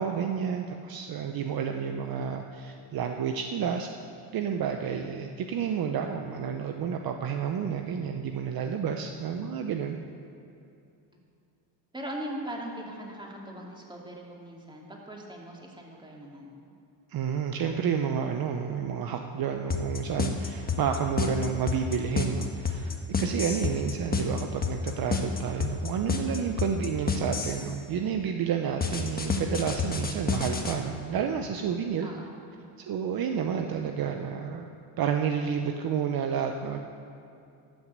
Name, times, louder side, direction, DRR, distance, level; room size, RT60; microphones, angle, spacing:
voice 1, 0.0-3.9 4.3-10.0 17.1-22.9 23.2-32.1 32.9-34.7 35.0-36.8, right 7 dB, 50° right, 5 dB, 0.8 m, -30 dB
voice 2, 11.9-16.5 32.0-32.3, right 1 dB, 10° right, -2 dB, 2.6 m, -40 dB
sound 1, 19.7-27.7 28.8-30.8, left 5 dB, 20° left, 1.4 m, -29 dB
13.0 x 6.1 x 8.0 m, 2.6 s
supercardioid pair, 85°, 46 cm